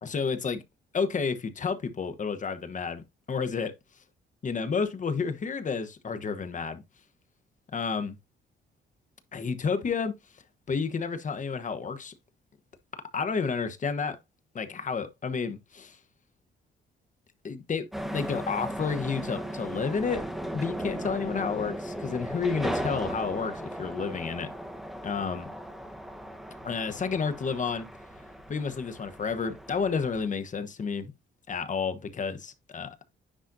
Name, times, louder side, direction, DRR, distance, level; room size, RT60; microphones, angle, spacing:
voice 1, 0.0-0.6 0.9-3.7 4.4-6.8 7.7-8.2 9.3-10.1 10.7-12.1 13.1-14.2 14.5-16.0 17.4-17.9 18.1-20.2 20.5-24.5 25.0-25.5 26.6-27.9 28.5-31.1 31.5-33.0, left 5 dB, 40° left, 1.2 m, -30 dB
sound 1, 17.9-30.3, right 1 dB, ahead, 1.1 m, -37 dB
10.0 x 4.1 x 2.7 m
cardioid pair, 90°, 20 cm